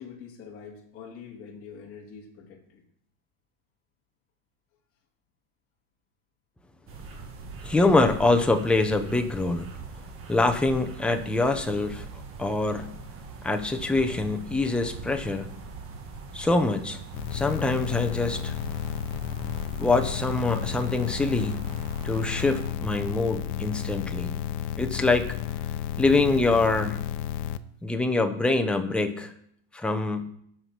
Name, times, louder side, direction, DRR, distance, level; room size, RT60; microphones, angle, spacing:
voice 1, 0.0-2.8, left 6 dB, 35° left, -2 dB, 2.0 m, -44 dB
sound 1, 6.9-22.7, right 4 dB, 35° right, 1.5 m, -41 dB
voice 2, 7.6-9.7 10.3-12.9 13.4-15.5 16.3-17.0 17.3-18.6 19.8-21.7 22.0-24.3 24.8-25.4 26.0-27.1 27.8-29.3 29.7-30.3, left 3 dB, 5° left, 5 dB, 0.5 m, -25 dB
sound 2, 17.1-27.6, left 11 dB, 75° left, 0.7 m, -32 dB
13.5 x 4.8 x 5.8 m, 0.71 s
cardioid pair, 165°, 38 cm